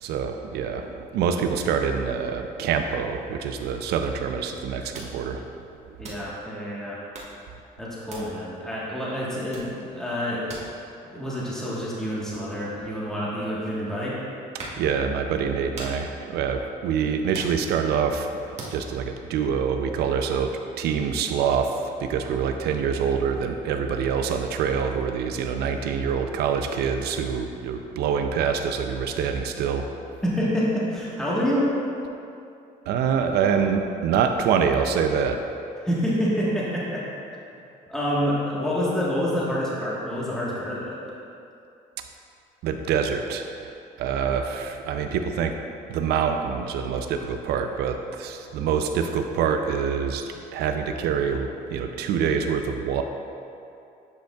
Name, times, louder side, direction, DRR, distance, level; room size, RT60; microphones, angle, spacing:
voice 1, 0.0-5.4 14.8-18.3 18.7-29.9 32.9-35.4 42.6-43.7 44.0-45.6 45.9-53.0, right 6 dB, 75° right, 6 dB, 0.4 m, -25 dB
sound 1, 4.9-5.6 6.0-6.6 7.0-7.5 8.0-8.7 9.1-9.2 9.5-13.7 14.2-15.0 15.4-18.1 18.6-18.9, right 2 dB, 40° right, 1.4 m, -41 dB
voice 2, 6.0-7.0 7.8-10.5 11.1-14.1 30.2-31.7 35.8-37.0 37.9-41.0, equal, 5° left, -7 dB, 1.3 m, -27 dB
10.5 x 5.2 x 2.3 m, 2.6 s
cardioid pair, 110°, 17 cm